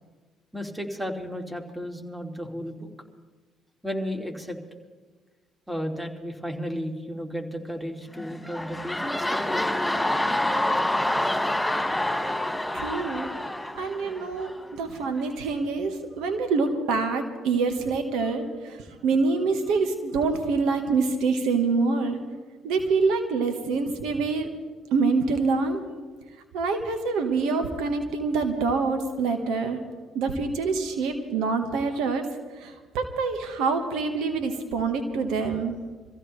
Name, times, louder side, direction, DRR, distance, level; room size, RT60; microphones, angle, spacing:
voice 1, 0.5-2.9 3.8-4.6 5.7-9.8, equal, 10° right, 2 dB, 2.9 m, -33 dB
sound 1, 8.1-14.7 15.2-15.3, left 1 dB, 5° left, 4.4 m, -27 dB
voice 2, 12.7-13.3 13.7-22.2 22.6-24.5 24.9-25.8 26.5-29.8 30.1-32.2 32.5-35.8, right 4 dB, 75° right, 6 dB, 1.5 m, -26 dB
25.0 x 15.0 x 3.3 m, 1.4 s
hypercardioid pair, 55°, 0 cm